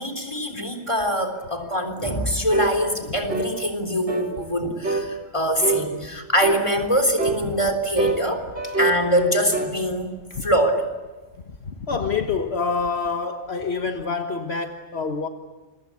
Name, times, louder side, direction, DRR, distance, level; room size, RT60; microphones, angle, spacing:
voice 1, 0.0-8.5 8.8-10.9, equal, 25° left, 6 dB, 3.8 m, -24 dB
sound 1, 2.5-2.8 3.3-3.5 4.1-4.3 4.8-5.1 5.6-5.9 6.4-6.7 7.2-7.4 8.0-9.8, right 3 dB, 75° right, 4.4 m, -25 dB
voice 2, 11.7-15.3, left 5 dB, 65° left, 5 dB, 1.6 m, -27 dB
28.0 x 23.5 x 8.4 m, 1.2 s
omnidirectional pair, 1.2 m